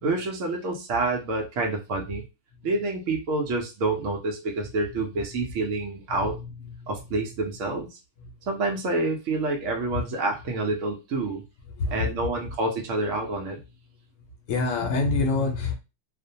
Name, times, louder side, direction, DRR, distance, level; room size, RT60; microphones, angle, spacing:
voice 1, 0.0-2.2 2.6-6.4 6.9-8.0 8.5-11.4 11.9-13.6, right 2 dB, 80° right, 1.0 m, -28 dB
voice 2, 4.6-5.0 5.3-5.5 6.1-7.3 8.2-8.3 9.9-10.0 11.7-12.3 14.5-15.7, left 3 dB, 75° left, 0.9 m, -28 dB
2.5 x 2.1 x 2.6 m
omnidirectional pair, 1.4 m